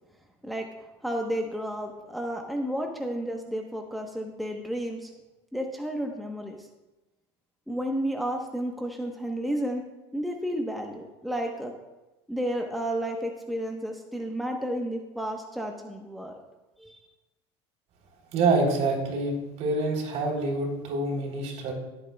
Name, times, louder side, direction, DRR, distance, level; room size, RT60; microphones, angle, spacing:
voice 1, 1.0-5.1 5.5-6.7 7.7-9.8 10.1-11.7 12.3-16.4 16.8-17.0, equal, ahead, 2 dB, 1.1 m, -32 dB
voice 2, 18.3-21.7, right 3 dB, 55° right, 0 dB, 3.7 m, -26 dB
17.0 x 8.6 x 2.4 m, 1.1 s
hypercardioid pair, 90°, 14 cm